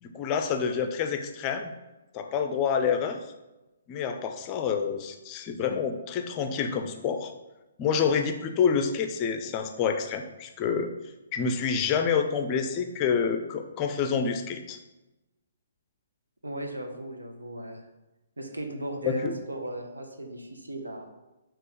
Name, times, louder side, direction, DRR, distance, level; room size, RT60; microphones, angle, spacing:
voice 1, 0.0-1.7 2.1-3.2 3.9-7.3 7.8-10.9 11.3-14.8 19.0-19.4, left 6 dB, 25° left, 6 dB, 0.5 m, -28 dB
voice 2, 16.4-17.9 18.4-21.1, right 1 dB, 75° right, 3 dB, 1.0 m, -37 dB
6.7 x 3.1 x 5.0 m, 1.0 s
figure-of-eight pair, 125°, 0 cm